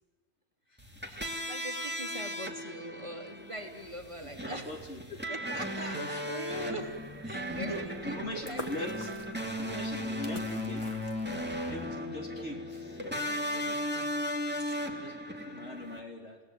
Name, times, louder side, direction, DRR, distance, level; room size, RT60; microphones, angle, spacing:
sound 1, 0.8-16.0, equal, 10° right, 2.6 m, -36 dB
voice 1, 1.1-4.8 5.3-6.9 7.2-8.2 8.5-8.9 13.8-14.3 14.6-14.8, right 1 dB, 25° right, 3 dB, 3.0 m, -42 dB
voice 2, 4.2-5.0 5.7-6.1 7.6-10.9 11.7-13.8 14.9-15.2 15.4-16.4, left 1 dB, 65° left, 2 dB, 3.9 m, -42 dB
sound 2, 6.8-11.8, equal, 25° left, 2.2 m, -48 dB
29.0 x 17.5 x 9.4 m, 1.4 s
omnidirectional pair, 1.3 m